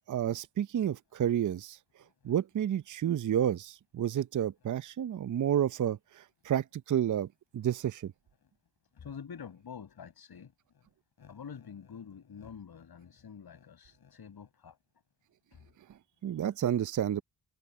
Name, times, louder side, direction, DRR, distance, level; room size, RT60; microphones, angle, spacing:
voice 1, 0.1-1.8 2.2-7.3 7.5-8.1 16.2-17.2, right 10 dB, 40° right, 0.8 m, -30 dB
voice 2, 9.0-10.5 11.2-14.8 15.5-15.6, left 7 dB, 50° left, 7.1 m, -47 dB
hypercardioid pair, 50°, 48 cm